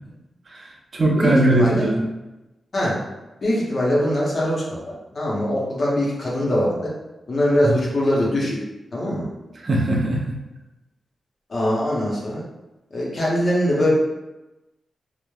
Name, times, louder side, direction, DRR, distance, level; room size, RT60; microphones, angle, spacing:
voice 1, 0.5-2.0 7.6-7.7 9.6-10.4, right 1 dB, 35° right, -1 dB, 0.4 m, -20 dB
voice 2, 1.2-1.9 2.7-3.0 3.4-6.9 7.3-8.6 8.9-9.3 11.5-12.4 12.9-13.9, left 1 dB, 40° left, -5 dB, 0.6 m, -22 dB
3.0 x 2.0 x 2.2 m, 1.0 s
wide cardioid pair, 170°, 0 cm